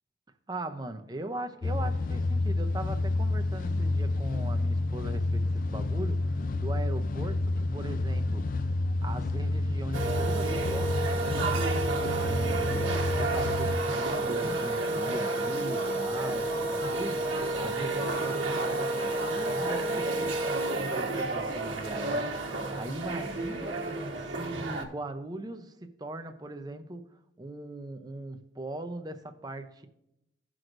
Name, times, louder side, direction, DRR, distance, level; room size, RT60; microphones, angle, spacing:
voice 1, 0.5-8.5 9.0-11.7 12.2-20.3 20.7-23.8 24.2-27.1 27.4-29.9, right 2 dB, 20° right, 0.6 m, -40 dB
sound 1, 1.6-13.8, left 2 dB, 45° left, 0.4 m, -29 dB
sound 2, 9.9-24.8, right 2 dB, 90° right, 1.2 m, -30 dB
17.0 x 6.2 x 2.6 m
head